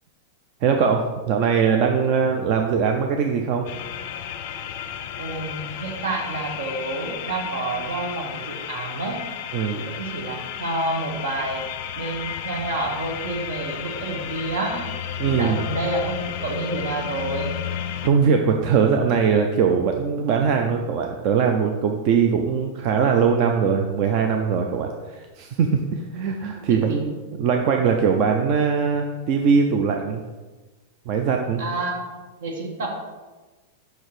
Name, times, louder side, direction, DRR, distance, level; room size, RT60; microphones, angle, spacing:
voice 1, 0.6-3.7 9.5-9.8 15.2-15.6 18.0-30.2 31.1-31.6, right 6 dB, 35° right, 3 dB, 0.4 m, -21 dB
sound 1, 3.7-18.1, left 9 dB, 40° left, 0.4 m, -33 dB
voice 2, 5.2-9.2 9.7-11.6 11.9-14.9 15.2-17.5 26.6-27.1 31.6-32.1 32.4-32.9, right 2 dB, 60° right, 2 dB, 1.4 m, -29 dB
5.8 x 4.5 x 4.8 m, 1.2 s
supercardioid pair, 175°, 0 cm